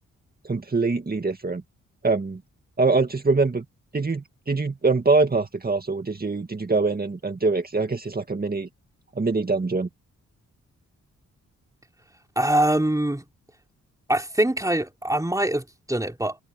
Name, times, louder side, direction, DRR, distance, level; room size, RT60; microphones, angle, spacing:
voice 1, 0.4-1.6 2.0-2.4 2.8-3.6 3.9-8.7 9.2-9.9, right 3 dB, 30° right, 2.1 m, -24 dB
voice 2, 12.4-13.2 14.1-16.4, right 1 dB, 10° right, 4.0 m, -23 dB
cardioid pair, 60°, 32 cm